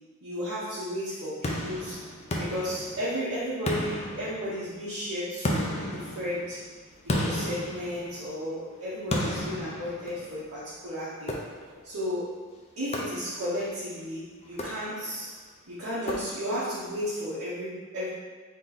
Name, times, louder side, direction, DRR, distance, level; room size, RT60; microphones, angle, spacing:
voice 1, 0.2-2.0 2.4-6.6 7.0-11.3 11.8-12.3 12.8-15.3 15.7-18.1, equal, 70° right, -11 dB, 1.1 m, -33 dB
sound 1, 1.4-3.2 3.7-4.8 5.4-8.5 9.1-10.5 11.3-11.9 12.9-13.6 14.5-15.2 16.1-16.7, left 1 dB, 30° left, 0.5 m, -33 dB
3.7 x 3.1 x 4.0 m, 1.4 s
head